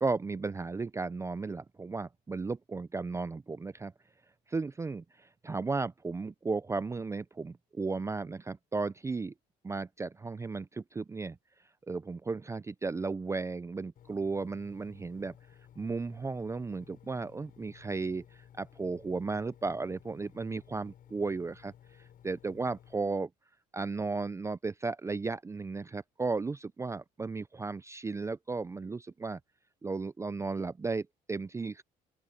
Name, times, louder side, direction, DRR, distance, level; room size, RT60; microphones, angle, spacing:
voice 1, 0.0-3.9 4.5-9.3 9.6-11.4 11.9-15.4 15.8-18.2 18.6-21.7 22.2-23.3 23.7-29.4 29.8-31.8, right 4 dB, 15° right, 0.4 m, -35 dB
Engine, 14.0-22.9, left 9 dB, 55° left, 7.8 m, -57 dB
open air
cardioid pair, 110°, 17 cm